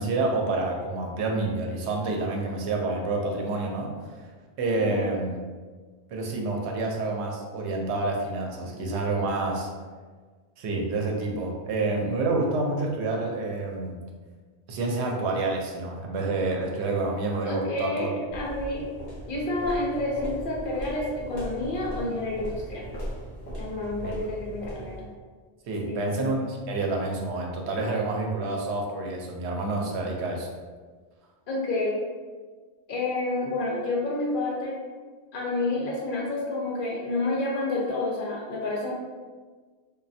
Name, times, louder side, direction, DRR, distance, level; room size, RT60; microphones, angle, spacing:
voice 1, 0.0-3.9 4.6-5.4 6.1-9.7 10.6-14.0 14.7-18.1 24.0-24.1 25.7-30.5, right 2 dB, 85° right, 0 dB, 0.9 m, -28 dB
voice 2, 4.8-5.1 17.5-18.9 19.3-22.9 23.6-25.1 25.9-26.2 31.5-32.0 32.9-34.8 35.3-38.9, left 2 dB, 60° left, -2 dB, 0.7 m, -29 dB
sound 1, 18.3-25.1, right 1 dB, 35° left, 1.1 m, -38 dB
3.1 x 2.2 x 2.6 m, 1.5 s
omnidirectional pair, 1.1 m